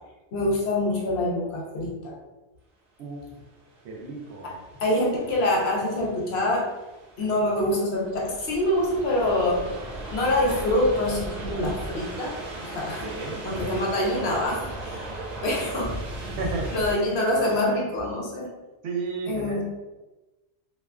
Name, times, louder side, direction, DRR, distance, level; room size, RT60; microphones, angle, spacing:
voice 1, 0.3-2.1 4.4-4.5 4.8-6.7 7.2-9.8 10.1-12.4 12.6-13.1 13.4-15.1 15.4-16.0 16.7-18.5 19.3-19.6, left 1 dB, 75° left, -3 dB, 0.9 m, -25 dB
sound 1, 3.4-16.9, right 1 dB, 45° right, 0.9 m, -37 dB
voice 2, 3.8-4.6 13.0-13.4 16.4-16.7 18.8-19.6, right 4 dB, 80° right, 0 dB, 0.8 m, -32 dB
sound 2, 10.5-10.9 12.1-12.2 12.7-14.4, left 2 dB, 30° left, 0.8 m, -42 dB
2.5 x 2.2 x 2.3 m, 1.1 s
omnidirectional pair, 1.1 m